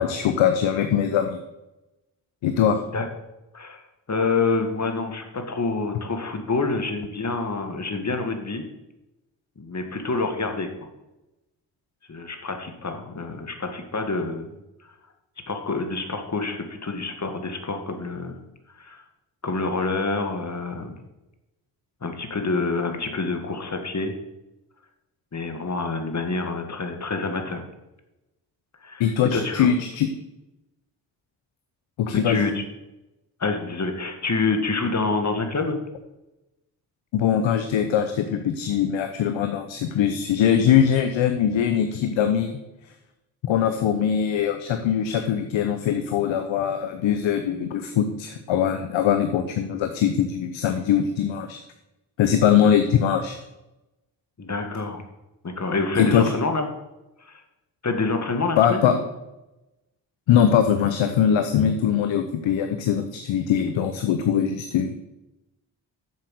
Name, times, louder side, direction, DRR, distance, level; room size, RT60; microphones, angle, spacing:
voice 1, 0.0-1.4 2.4-2.8 29.0-30.1 32.0-32.5 37.1-42.6 43.4-51.6 52.2-53.4 56.0-56.3 58.6-58.9 60.3-65.0, left 8 dB, 80° left, 7 dB, 0.8 m, -22 dB
voice 2, 4.1-8.6 9.6-10.7 12.1-14.5 15.5-18.4 18.8-19.0 19.4-21.0 22.0-24.1 25.3-27.6 28.8-29.7 32.1-32.6 33.4-35.8 54.4-55.0 55.4-56.7 57.2-57.4 57.8-59.0, left 3 dB, 35° left, 5 dB, 1.9 m, -27 dB
7.7 x 6.9 x 6.5 m, 0.97 s
supercardioid pair, 50°, 46 cm